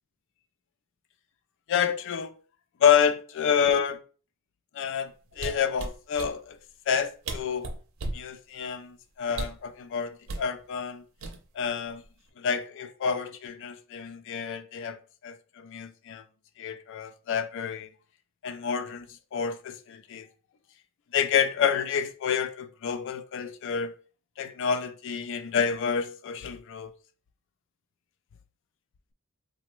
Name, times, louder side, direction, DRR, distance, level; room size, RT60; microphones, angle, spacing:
voice 1, 1.7-2.3 2.8-4.0 4.7-6.6 6.9-7.7 8.1-11.0 11.6-12.0 12.4-16.2 16.6-17.9 18.4-19.1 19.3-20.3 21.1-24.0 24.4-26.9, left 7 dB, 60° left, 0.3 m, -28 dB
sound 1, 5.3-6.3 7.0-7.1 7.2-8.3 9.3-9.7 10.3-10.5 11.2-11.7 12.0-12.3, right 2 dB, 70° right, 0.5 m, -35 dB
3.2 x 2.0 x 3.0 m
head